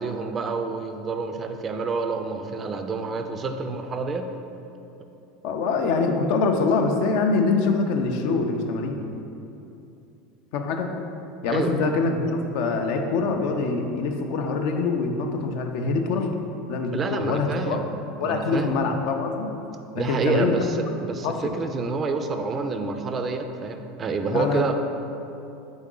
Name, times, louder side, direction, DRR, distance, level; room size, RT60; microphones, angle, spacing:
voice 1, 0.0-4.3 11.5-11.7 16.9-17.8 18.2-18.7 20.0-20.7 21.0-21.3 21.5-24.7, right 4 dB, 30° right, 7 dB, 0.3 m, -28 dB
voice 2, 5.4-9.0 10.5-10.9 11.4-16.3 16.7-17.8 18.2-19.5 20.1-20.6 21.2-21.5 24.3-24.7, left 4 dB, 65° left, 4 dB, 0.4 m, -24 dB
4.0 x 3.5 x 3.7 m, 2.8 s
supercardioid pair, 110°, 0 cm